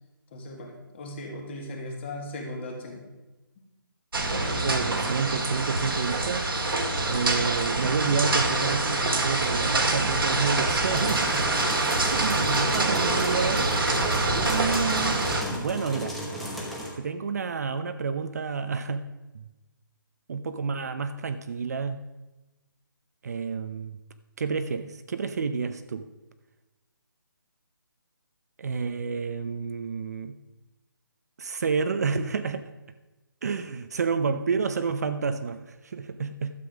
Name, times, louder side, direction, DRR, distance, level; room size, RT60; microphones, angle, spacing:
voice 1, 0.3-3.1, left 1 dB, 30° left, 2 dB, 1.9 m, -37 dB
sound 1, 4.1-15.4, right 2 dB, 85° right, 2.0 m, -25 dB
voice 2, 4.6-6.5 7.1-11.5 11.8-13.7 14.3-16.2 16.9-19.0 19.3-19.5 20.3-22.0 23.2-24.0 24.4-26.1 28.6-30.4 31.4-32.6 33.4-36.5, right 5 dB, 45° right, 10 dB, 0.7 m, -29 dB
sound 2, 10.8-16.9, equal, ahead, 1.0 m, -35 dB
12.0 x 7.7 x 5.0 m, 1.1 s
hypercardioid pair, 165°, 12 cm